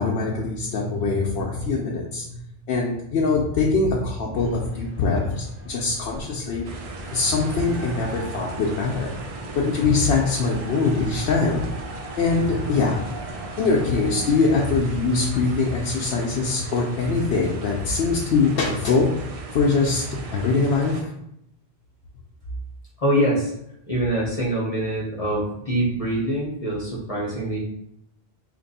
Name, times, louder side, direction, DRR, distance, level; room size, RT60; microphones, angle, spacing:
voice 1, 0.0-2.4 2.7-6.7 7.1-9.2 9.5-11.7 12.2-13.1 13.6-21.1, left 4 dB, 75° left, -2 dB, 0.8 m, -23 dB
sound 1, 4.3-14.4, equal, 10° right, 1.1 m, -40 dB
sound 2, 6.6-21.0, right 4 dB, 55° right, 0.4 m, -38 dB
voice 2, 23.0-23.5 23.9-27.6, right 1 dB, 40° left, -5 dB, 0.8 m, -24 dB
2.9 x 2.5 x 4.0 m, 0.79 s
omnidirectional pair, 1.1 m